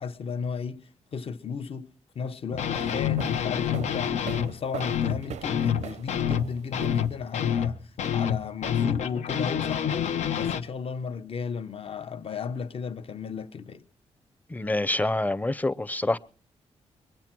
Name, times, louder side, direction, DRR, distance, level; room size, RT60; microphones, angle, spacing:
voice 1, 0.0-13.8, left 6 dB, 55° left, 0.9 m, -35 dB
sound 1, 2.5-4.5 4.8-10.6, left 8 dB, 90° left, 1.0 m, -27 dB
sound 2, 2.6-7.4, right 9 dB, 85° right, 0.6 m, -42 dB
voice 2, 14.5-16.2, left 2 dB, 15° left, 0.6 m, -26 dB
22.5 x 8.9 x 6.0 m
cardioid pair, 90°, 12 cm